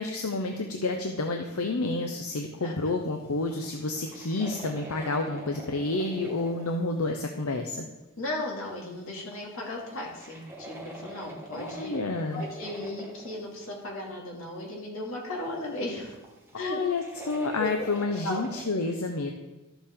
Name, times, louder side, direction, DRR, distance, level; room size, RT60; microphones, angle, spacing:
voice 1, 0.0-7.8 11.6-12.5 16.5-19.3, left 3 dB, 85° left, 4 dB, 0.7 m, -29 dB
voice 2, 2.6-2.9 8.2-11.9 12.3-16.2 16.6-16.8 17.6-17.7 18.2-18.4, left 2 dB, 70° left, -2 dB, 2.5 m, -36 dB
sound 1, 2.9-3.0 3.3-6.9 9.1-13.8 16.0-18.6, right 2 dB, 10° right, 1.4 m, -45 dB
12.5 x 7.1 x 3.7 m, 1.1 s
head